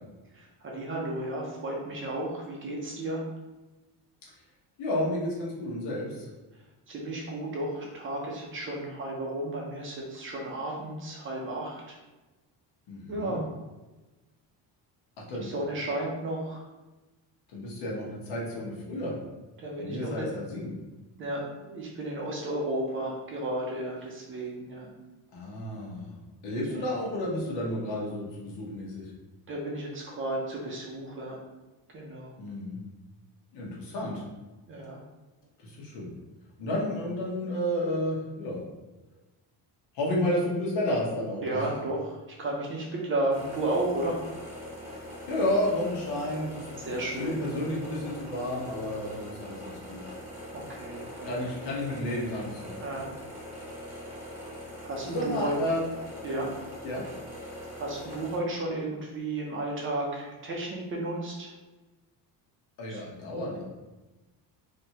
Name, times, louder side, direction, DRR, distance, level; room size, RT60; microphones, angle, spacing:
voice 1, 0.3-3.2 6.9-11.8 13.1-13.4 15.4-16.6 19.6-20.3 21.2-24.9 26.7-26.9 29.5-31.4 31.9-32.4 34.7-35.0 41.4-44.2 46.8-47.4 50.5-51.3 52.8-53.1 54.8-55.6 56.2-56.6 57.7-61.5 62.9-63.0, right 1 dB, 30° right, -2 dB, 0.5 m, -33 dB
voice 2, 4.8-6.3 12.9-13.4 15.3-15.5 17.5-19.1 19.8-20.7 25.3-26.1 26.4-29.1 32.4-32.8 33.5-34.2 35.6-36.2 36.6-38.6 39.9-41.7 44.9-50.0 51.2-52.7 55.0-55.9 56.8-57.0 62.8-63.6, left 1 dB, 75° left, -3 dB, 1.1 m, -31 dB
sound 1, 43.3-58.4, equal, 5° right, 1.0 m, -42 dB
3.3 x 2.7 x 2.8 m, 1.1 s
cardioid pair, 180°, 41 cm